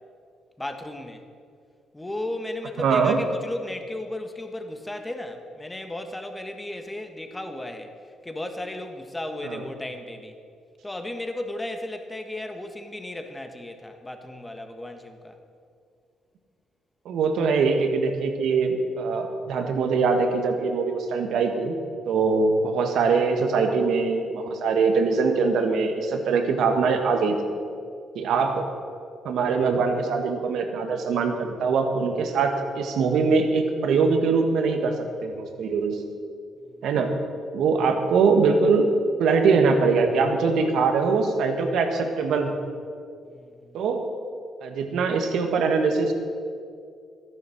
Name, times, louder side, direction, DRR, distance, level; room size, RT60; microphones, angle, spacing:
voice 1, 0.6-1.2 1.9-7.9 8.2-10.3 10.8-15.4 36.6-36.9 43.2-43.8, left 1 dB, 10° left, 6 dB, 1.5 m, -35 dB
voice 2, 2.8-3.2 9.4-9.6 17.0-21.7 22.0-27.4 28.1-28.7 29.2-34.9 35.2-36.0 36.8-37.1 37.5-38.9 39.2-42.5 43.7-44.1 44.6-46.1, right 4 dB, 75° right, 5 dB, 1.6 m, -22 dB
13.0 x 10.5 x 6.4 m, 2.3 s
cardioid pair, 90°, 0 cm